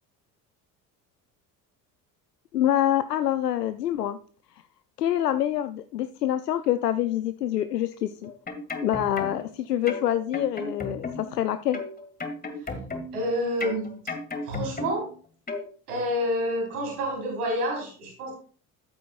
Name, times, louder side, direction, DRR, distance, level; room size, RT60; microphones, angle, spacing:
voice 1, 2.5-4.2 5.0-8.3 8.8-11.8, left 11 dB, 80° left, 12 dB, 0.6 m, -26 dB
sound 1, 8.2-9.5 9.9-11.4 11.7-13.3 13.6-15.1 15.5-15.7, left 3 dB, 20° left, 2.0 m, -34 dB
voice 2, 13.1-14.0 14.4-15.0 15.9-18.3, equal, 70° right, -1 dB, 4.0 m, -28 dB
14.0 x 8.9 x 2.4 m, 0.43 s
figure-of-eight pair, 60°, 47 cm